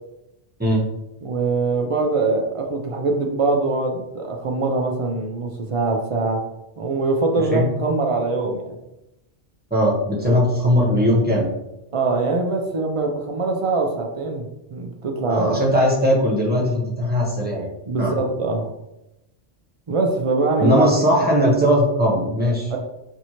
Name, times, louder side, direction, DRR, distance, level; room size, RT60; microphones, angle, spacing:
voice 1, 1.2-6.5 6.8-8.8 11.9-14.5 14.7-15.6 17.9-18.7 19.9-20.9 21.1-21.2 22.7-22.8, right 3 dB, 50° right, 2 dB, 0.4 m, -23 dB
voice 2, 9.7-11.5 15.3-17.7 18.0-18.2 20.6-22.7, equal, 10° right, -4 dB, 0.8 m, -19 dB
4.5 x 2.6 x 2.9 m, 0.91 s
omnidirectional pair, 1.1 m